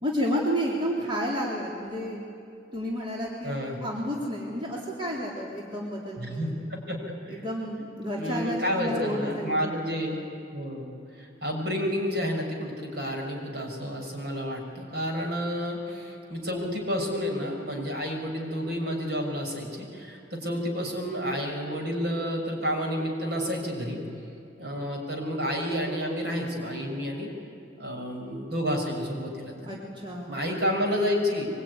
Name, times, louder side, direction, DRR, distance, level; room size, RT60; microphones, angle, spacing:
voice 1, 0.0-2.2 2.7-6.6 7.3-9.6 29.6-30.5, equal, 25° right, -4 dB, 3.6 m, -31 dB
voice 2, 3.4-3.8 6.2-7.4 8.1-10.3 10.5-24.0 24.6-27.3 27.8-29.8 30.3-31.5, equal, 60° right, 1 dB, 5.9 m, -30 dB
24.0 x 23.5 x 9.7 m, 2.7 s
head